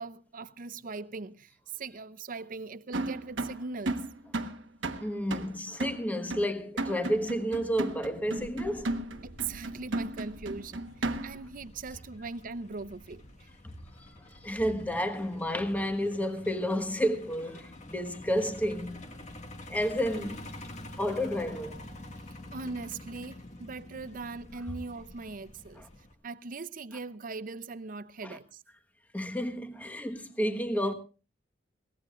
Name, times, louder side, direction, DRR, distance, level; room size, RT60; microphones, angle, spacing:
voice 1, 0.0-4.0 9.2-13.5 22.5-25.8 26.2-28.6, right 4 dB, 45° right, 0.6 m, -40 dB
sound 1, 2.9-11.5, right 2 dB, 80° right, 1.3 m, -35 dB
voice 2, 5.0-9.0 13.6-13.8 14.3-19.1 19.7-20.5 21.0-21.8 28.2-28.4 29.1-30.9, equal, 10° left, 1.3 m, -31 dB
Truck, 8.4-26.1, left 1 dB, 40° left, 1.9 m, -48 dB
22.5 x 18.0 x 2.5 m
head